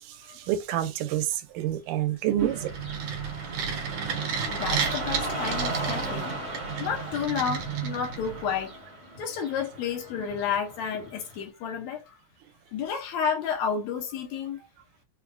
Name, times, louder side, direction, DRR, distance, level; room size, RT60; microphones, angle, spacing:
voice 1, 0.0-2.7, right 11 dB, 90° right, 2.1 m, -28 dB
sound 1, 2.3-8.6, right 7 dB, 70° right, 1.9 m, -32 dB
Car passing by / Traffic noise roadway noise, 2.4-11.4, right 1 dB, 35° right, 1.4 m, -37 dB
voice 2, 4.5-8.7 9.2-12.1 12.7-14.6, left 7 dB, 75° left, 1.9 m, -31 dB
5.3 x 2.4 x 2.2 m
omnidirectional pair, 3.5 m